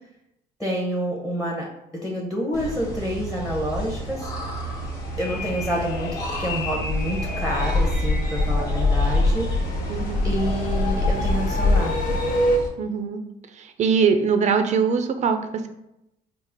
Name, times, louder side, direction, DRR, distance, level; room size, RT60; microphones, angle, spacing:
voice 1, 0.6-4.3 5.2-9.8 10.2-12.0, equal, ahead, -3 dB, 0.8 m, -28 dB
sound 1, 2.5-12.7, left 1 dB, 20° left, 1.1 m, -25 dB
sound 2, 4.4-12.6, equal, 55° left, 0.6 m, -31 dB
sound 3, 5.2-8.7, left 4 dB, 80° left, 1.2 m, -36 dB
voice 2, 9.9-10.4 12.8-13.2 13.5-15.7, right 6 dB, 45° right, 7 dB, 0.5 m, -22 dB
4.7 x 2.0 x 3.5 m, 0.85 s
cardioid pair, 110°, 17 cm